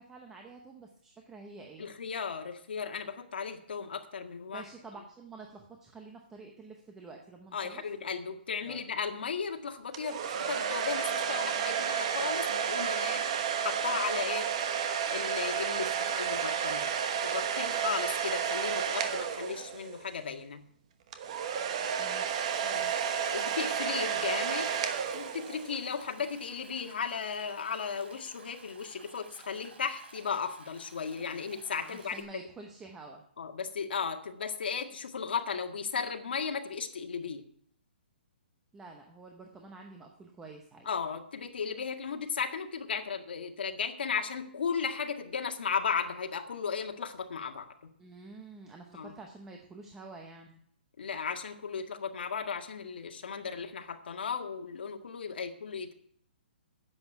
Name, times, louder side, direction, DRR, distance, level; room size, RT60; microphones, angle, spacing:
voice 1, 0.0-1.9 4.5-7.8 8.6-8.8 22.0-22.5 31.8-33.2 38.7-40.9 48.0-50.6, right 3 dB, 5° right, 2 dB, 0.7 m, -49 dB
voice 2, 1.8-4.6 7.5-13.3 13.6-14.5 15.1-16.9 17.2-20.6 22.6-22.9 23.3-24.7 25.1-32.2 33.4-37.4 40.9-47.9 48.9-49.1 51.0-55.9, left 6 dB, 65° left, 4 dB, 1.9 m, -35 dB
sound 1, 9.9-20.1 21.1-25.8, right 7 dB, 35° right, 1.1 m, -31 dB
Stream, 22.2-32.2, right 4 dB, 75° right, 4.6 m, -55 dB
10.5 x 7.8 x 9.1 m, 0.64 s
hypercardioid pair, 175°, 6 cm